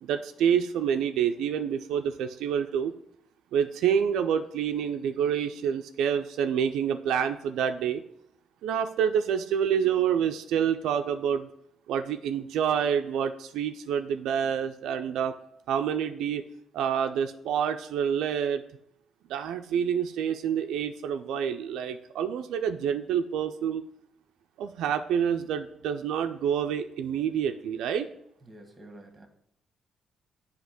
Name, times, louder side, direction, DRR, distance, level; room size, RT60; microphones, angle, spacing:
voice 1, 0.0-2.9 3.5-8.0 8.6-11.5 11.9-15.3 15.7-16.4 16.7-18.6 19.3-23.8 24.6-28.1, right 8 dB, 85° right, 7 dB, 0.3 m, -27 dB
voice 2, 28.5-29.3, right 1 dB, 20° right, 4 dB, 1.4 m, -48 dB
8.0 x 2.9 x 5.7 m, 0.77 s
cardioid pair, 90°, 0 cm